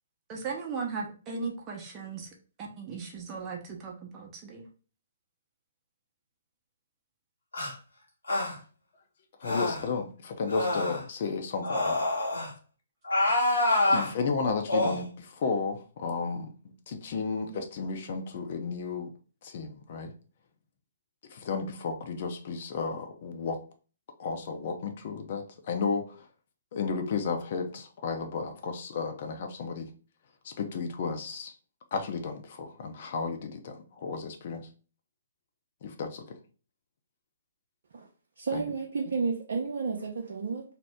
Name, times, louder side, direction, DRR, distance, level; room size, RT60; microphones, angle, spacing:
voice 1, 0.3-2.3 2.6-4.7, right 5 dB, 25° right, -1 dB, 0.8 m, -37 dB
sound 1, 7.5-7.7 8.3-8.5 9.4-9.9 10.5-11.0 11.6-12.5 13.0-14.1 14.7-15.0, left 2 dB, 85° left, 1.2 m, -26 dB
voice 2, 9.4-12.0 13.9-19.1 19.4-20.1 21.3-23.6 24.2-26.3 26.7-29.9 30.4-31.5 31.9-34.7 35.8-36.4 38.5-38.6, left 5 dB, 50° left, 5 dB, 0.6 m, -33 dB
voice 3, 38.4-40.6, right 4 dB, 65° right, -1 dB, 0.5 m, -31 dB
2.8 x 2.0 x 3.4 m, 0.38 s
figure-of-eight pair, 130°, 0 cm